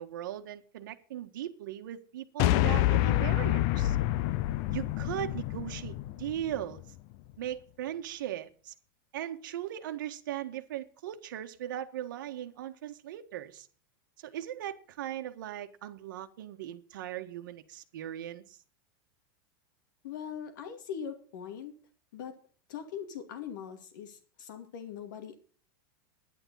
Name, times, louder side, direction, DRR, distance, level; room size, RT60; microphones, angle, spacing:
voice 1, 0.0-4.0 4.7-6.8 7.4-8.7 9.1-13.7 14.2-18.4, right 11 dB, 65° right, 1.6 m, -38 dB
sound 1, 2.4-6.8, left 15 dB, 35° left, 0.5 m, -28 dB
voice 2, 20.0-21.7 22.1-22.4 22.7-25.4, left 8 dB, 60° left, 2.4 m, -41 dB
11.0 x 10.5 x 5.6 m
supercardioid pair, 180°, 11 cm